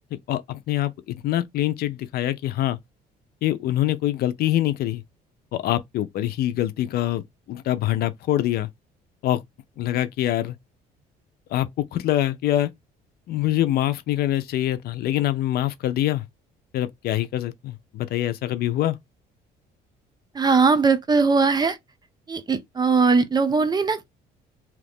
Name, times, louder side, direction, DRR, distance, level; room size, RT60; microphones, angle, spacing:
voice 1, 0.3-2.8 3.4-5.0 5.5-7.2 7.5-8.7 9.2-9.4 9.8-10.6 11.5-12.7 13.3-16.2 16.7-19.0, left 13 dB, 65° left, 0.6 m, -24 dB
voice 2, 20.3-21.8 22.3-24.1, right 4 dB, 25° right, 0.6 m, -20 dB
2.8 x 2.5 x 3.5 m
cardioid pair, 110°, 17 cm